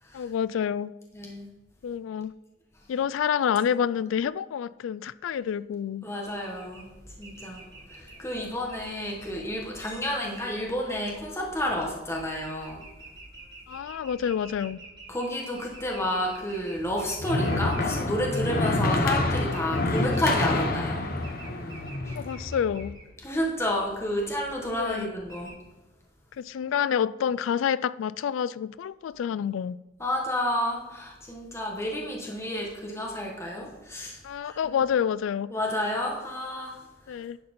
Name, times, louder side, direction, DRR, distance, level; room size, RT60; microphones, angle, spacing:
voice 1, 0.1-0.9 1.8-2.3 2.9-6.1 13.7-14.8 22.1-23.0 24.8-25.1 26.4-29.8 34.2-35.5 37.1-37.4, left 8 dB, 85° left, 0.3 m, -28 dB
voice 2, 1.1-1.5 2.7-2.9 6.0-12.8 15.1-21.1 22.0-22.2 23.2-25.5 30.0-34.8 35.5-37.2, left 1 dB, 15° left, 1.2 m, -31 dB
sound 1, 6.3-25.5, right 2 dB, 25° right, 1.7 m, -49 dB
sound 2, 16.8-22.9, left 2 dB, 50° left, 0.9 m, -28 dB
10.5 x 4.3 x 5.1 m
head